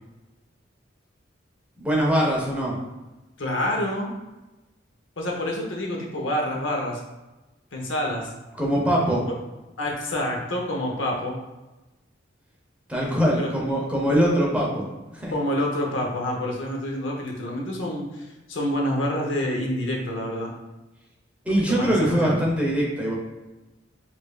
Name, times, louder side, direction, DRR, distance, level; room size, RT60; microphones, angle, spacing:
voice 1, 1.8-2.8 8.6-9.2 12.9-14.8 15.1-15.3 21.5-23.1, equal, 5° right, -3 dB, 0.7 m, -22 dB
voice 2, 3.4-4.1 5.2-7.0 7.7-8.3 9.8-11.3 13.4-13.5 15.3-20.5 21.7-22.4, left 1 dB, 85° left, 0 dB, 0.7 m, -27 dB
4.9 x 2.5 x 2.3 m, 1.1 s
head